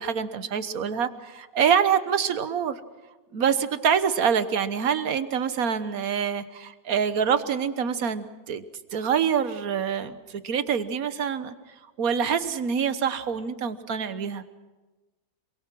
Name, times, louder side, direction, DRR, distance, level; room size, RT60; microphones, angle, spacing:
voice 1, 0.0-2.8 3.3-8.6 8.9-11.5 12.0-14.4, right 7 dB, 60° right, 12 dB, 1.5 m, -26 dB
27.0 x 23.5 x 6.2 m, 1.2 s
omnidirectional pair, 1.7 m